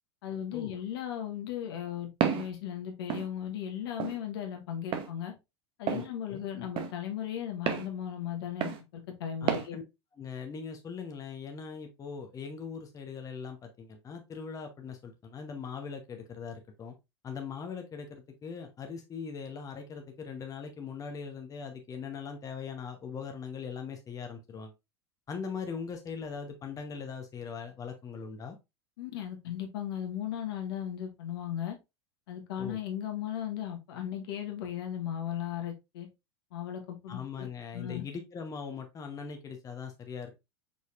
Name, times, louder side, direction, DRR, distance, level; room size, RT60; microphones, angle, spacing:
voice 1, 0.2-5.3 5.8-9.8 29.0-31.8 32.3-36.1 36.5-37.5 37.7-38.0, left 10 dB, 60° left, 1.1 m, -36 dB
Walk footsteps, 2.2-2.5 3.1-3.3 4.0-4.2 4.9-5.1 5.9-6.1 6.8-6.9 7.7-7.9 8.6-8.8 9.5-9.7, right 9 dB, 35° right, 0.8 m, -30 dB
voice 2, 5.9-6.4 9.4-9.8 10.2-16.9 17.2-24.7 25.3-28.6 32.6-32.8 37.1-40.3, left 6 dB, 25° left, 0.9 m, -40 dB
5.0 x 4.0 x 2.4 m
figure-of-eight pair, 85°, 14 cm